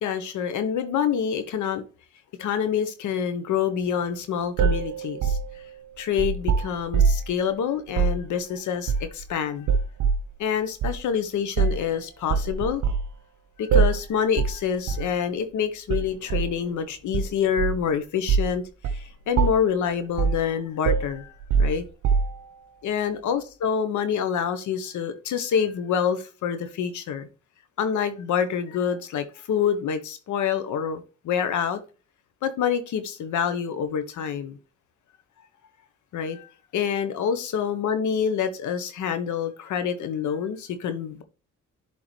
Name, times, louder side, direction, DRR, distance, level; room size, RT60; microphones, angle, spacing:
voice 1, 0.0-1.8 2.4-5.4 6.0-9.7 10.4-12.8 13.6-18.6 18.9-21.8 22.8-27.3 27.8-31.8 32.4-34.6 36.1-41.2, left 7 dB, 75° left, 1.2 m, -27 dB
sound 1, 4.6-7.3 7.9-8.2 8.9-9.3 9.7-10.3 10.8-11.0 11.6-11.9 12.3-13.1 13.7-14.1 14.4-14.6 14.9-15.1 15.9-16.5 17.1-17.9 18.3-18.5 18.8-19.0 19.4-19.8 20.2-20.5 20.9-22.5, right 5 dB, 75° right, 1.0 m, -23 dB
11.5 x 3.9 x 3.3 m
cardioid pair, 90°, 30 cm